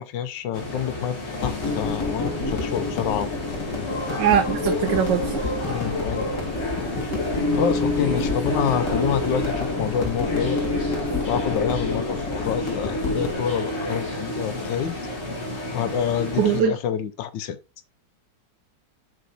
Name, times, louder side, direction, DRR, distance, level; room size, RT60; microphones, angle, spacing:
voice 1, 0.0-3.9 5.7-6.3 7.5-10.6 11.3-15.0 15.7-17.6, left 8 dB, 90° left, 1.5 m, -28 dB
sound 1, 0.5-16.6, left 1 dB, 40° left, 2.1 m, -30 dB
sound 2, 1.4-13.4, left 3 dB, 70° left, 3.2 m, -29 dB
voice 2, 4.2-5.6 16.4-16.7, right 8 dB, 80° right, 1.4 m, -21 dB
6.4 x 5.2 x 4.1 m
omnidirectional pair, 1.9 m